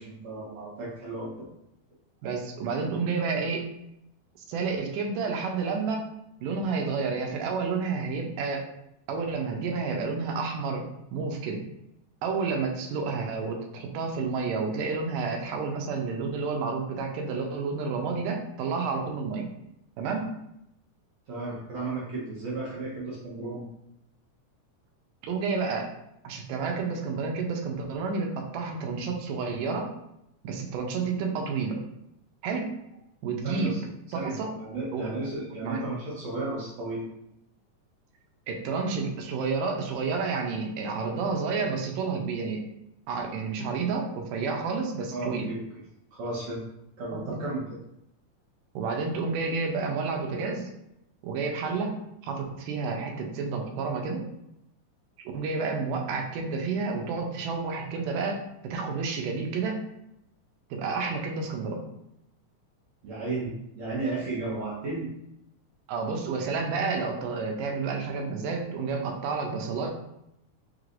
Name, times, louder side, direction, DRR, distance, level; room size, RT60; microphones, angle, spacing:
voice 1, 0.0-1.5 21.3-23.6 33.4-33.8 34.1-37.0 45.1-45.6 46.1-46.6 47.0-47.6 63.0-65.1, right 2 dB, 70° right, -6 dB, 1.8 m, -34 dB
voice 2, 2.2-3.7 4.5-6.1 6.4-8.6 9.1-10.9 11.1-11.6 12.2-19.5 20.0-20.3 25.2-25.9 26.2-29.9 30.4-31.7 32.4-32.7 33.2-33.8 34.1-34.6 34.9-35.2 35.6-35.9 38.5-42.6 43.1-45.5 47.1-47.4 48.8-50.7 51.2-54.3 55.3-59.8 60.7-61.8 65.9-69.9, right 4 dB, 85° right, 3 dB, 2.2 m, -30 dB
5.0 x 3.2 x 2.5 m, 0.82 s
omnidirectional pair, 3.8 m